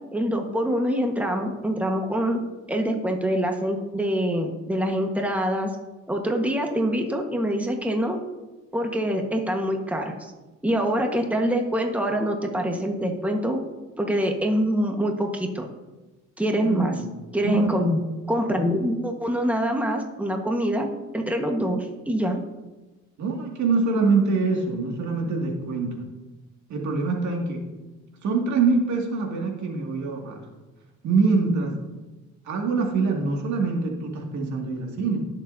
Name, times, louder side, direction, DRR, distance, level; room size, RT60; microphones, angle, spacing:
voice 1, 0.1-2.4 2.7-5.7 6.1-8.2 8.7-10.3 10.6-13.6 14.0-15.7 16.4-16.9 17.3-18.0 18.3-20.9 21.1-22.4, equal, 5° right, 2 dB, 1.4 m, -25 dB
voice 2, 16.5-17.1 17.4-17.7 23.2-26.0 26.7-27.6 28.2-30.4 31.0-31.8 32.4-35.2, right 4 dB, 70° right, 0 dB, 2.2 m, -24 dB
17.5 x 7.1 x 2.7 m, 1.1 s
cardioid pair, 90°, 30 cm